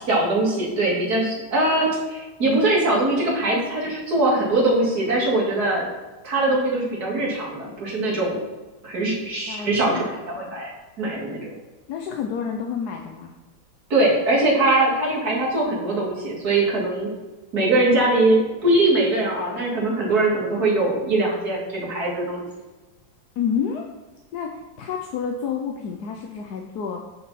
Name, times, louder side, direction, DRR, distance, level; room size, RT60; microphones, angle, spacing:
voice 1, 0.1-5.9 6.2-8.4 8.8-10.7 11.0-11.4 13.9-17.1 17.5-22.4, right 2 dB, 50° right, -4 dB, 3.2 m, -21 dB
voice 2, 9.2-10.1 11.9-13.3 23.4-23.9 24.3-27.0, left 7 dB, 65° left, 2 dB, 1.2 m, -29 dB
9.2 x 6.9 x 4.2 m, 1.2 s
omnidirectional pair, 2.1 m